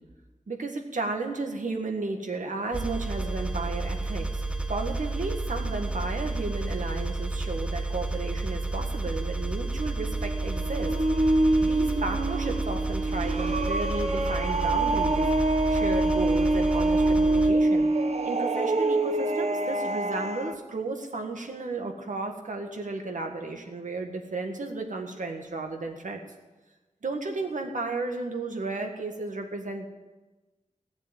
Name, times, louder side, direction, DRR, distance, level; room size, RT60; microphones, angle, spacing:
voice 1, 0.5-4.4 4.7-10.9 11.6-17.9 18.2-26.2 27.0-29.9, right 3 dB, 80° right, 3 dB, 1.8 m, -33 dB
sound 1, 2.7-17.5, right 2 dB, 10° right, 1.0 m, -31 dB
sound 2, 10.0-20.5, right 2 dB, 60° right, 1.1 m, -25 dB
16.5 x 7.1 x 9.2 m, 1.2 s
wide cardioid pair, 90°, 13 cm